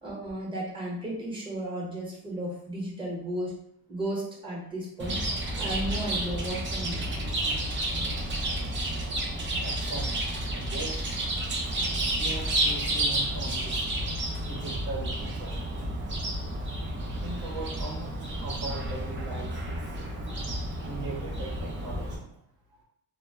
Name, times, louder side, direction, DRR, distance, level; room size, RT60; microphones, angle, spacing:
voice 1, 0.0-3.6 3.9-5.2 5.6-7.1, right 1 dB, 15° right, -4 dB, 0.8 m, -34 dB
Chirp tweet, 5.0-22.2, right 1 dB, 30° right, 0.4 m, -31 dB
voice 2, 9.6-11.0 11.7-11.8 12.1-13.8 14.4-15.9 17.2-18.1 18.4-19.8 20.8-22.4, right 3 dB, 70° right, -3 dB, 0.7 m, -39 dB
2.0 x 2.0 x 3.3 m, 0.72 s
cardioid pair, 135°, 38 cm